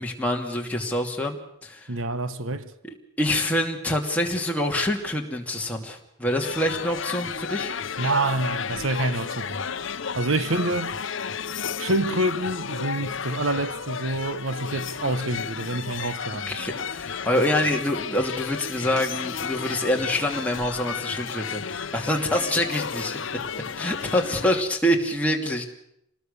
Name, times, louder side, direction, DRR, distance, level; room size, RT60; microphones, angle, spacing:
voice 1, 0.0-1.9 2.8-7.7 16.5-23.2 23.8-25.7, left 1 dB, 5° left, 2.6 m, -26 dB
voice 2, 1.9-2.7 8.0-9.7 10.1-11.0 11.8-16.6, right 2 dB, 85° right, 1.1 m, -27 dB
sound 1, 6.4-24.6, left 6 dB, 70° left, 0.8 m, -33 dB
26.5 x 19.5 x 6.8 m
head